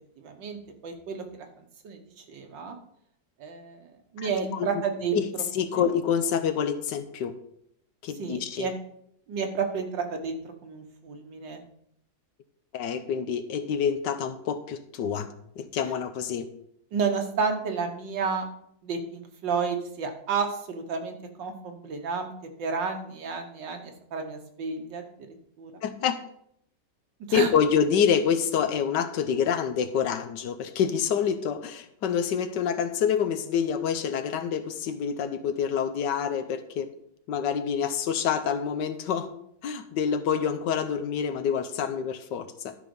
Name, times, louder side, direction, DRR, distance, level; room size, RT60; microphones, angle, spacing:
voice 1, 0.2-1.5 1.8-2.8 3.4-5.2 5.7-5.9 8.2-8.7 9.3-11.6 16.9-18.5 18.8-22.3 22.6-25.0 25.6-25.7 27.3-27.5, right 5 dB, 85° right, 4 dB, 1.9 m, -31 dB
voice 2, 4.2-4.8 5.1-5.2 5.5-7.3 8.0-8.7 12.7-16.5 25.8-26.2 27.3-36.9 37.3-39.3 39.6-42.8, left 7 dB, 75° left, 10 dB, 1.4 m, -27 dB
11.5 x 5.1 x 5.3 m, 0.72 s
omnidirectional pair, 1.9 m